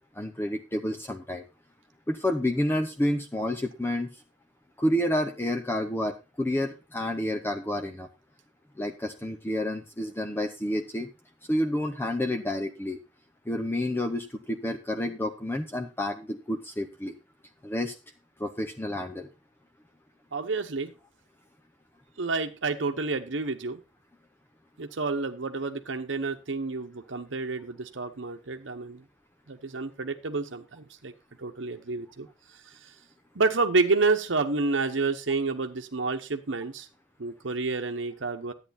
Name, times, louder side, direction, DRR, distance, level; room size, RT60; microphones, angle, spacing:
voice 1, 0.1-1.4 2.1-4.1 4.8-8.1 8.8-11.1 11.5-13.0 13.5-17.1 17.6-17.9 18.4-19.3, left 1 dB, 10° left, 5 dB, 0.7 m, -29 dB
voice 2, 20.3-20.9 22.2-23.8 24.8-29.0 29.5-31.1 31.4-32.3 32.5-32.9 33.3-36.9 37.2-38.5, right 3 dB, 90° right, 5 dB, 1.0 m, -29 dB
11.0 x 8.9 x 4.2 m, 0.28 s
head